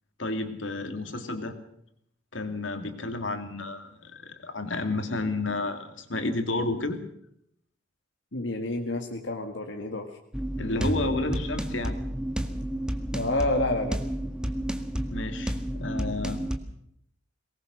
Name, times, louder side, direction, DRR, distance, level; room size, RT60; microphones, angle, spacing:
voice 1, 0.2-1.6 2.3-7.0 10.6-12.0 15.1-16.5, left 2 dB, 90° left, 7 dB, 2.8 m, -31 dB
voice 2, 8.3-10.1 13.1-14.0, left 1 dB, 70° left, 3 dB, 1.9 m, -29 dB
sound 1, 10.3-16.6, equal, 5° right, 1.7 m, -31 dB
23.0 x 19.5 x 6.5 m, 0.73 s
head